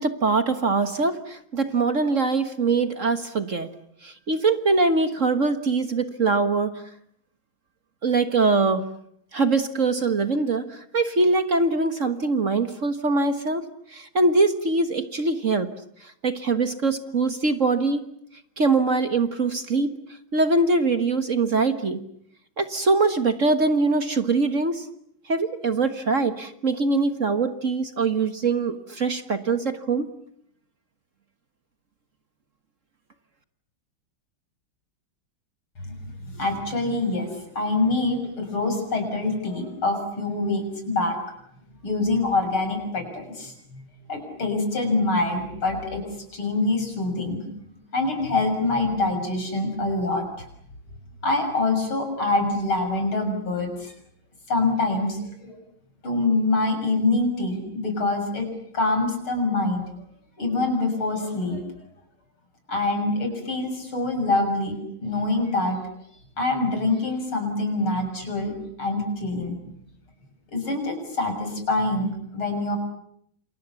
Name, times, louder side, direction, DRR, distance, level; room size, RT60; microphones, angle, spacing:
voice 1, 0.0-3.7 4.0-6.7 8.0-8.8 9.3-15.7 16.0-18.0 18.6-19.9 20.3-22.0 22.6-24.9 25.3-30.1, right 3 dB, 40° right, 9 dB, 1.6 m, -23 dB
voice 2, 35.9-41.2 41.8-43.8 44.1-46.0 46.3-47.4 47.9-50.5 51.2-53.9 54.5-55.6 56.0-58.5 58.7-59.8 60.4-61.6 62.7-64.8 65.0-65.8 66.4-68.5 68.8-69.6 70.5-72.8, left 2 dB, 80° left, 6 dB, 7.4 m, -25 dB
28.5 x 28.0 x 7.1 m, 0.71 s
omnidirectional pair, 2.3 m